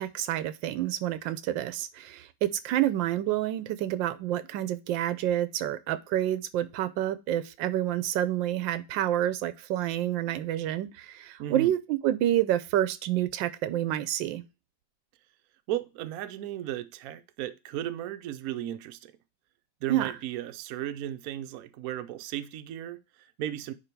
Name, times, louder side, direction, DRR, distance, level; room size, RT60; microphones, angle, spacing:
voice 1, 0.0-14.4 19.9-20.1, right 12 dB, 85° right, 1.3 m, -28 dB
voice 2, 11.4-11.7 15.7-19.1 19.8-23.7, right 12 dB, 65° right, 0.9 m, -35 dB
9.8 x 3.3 x 4.5 m
omnidirectional pair, 2.0 m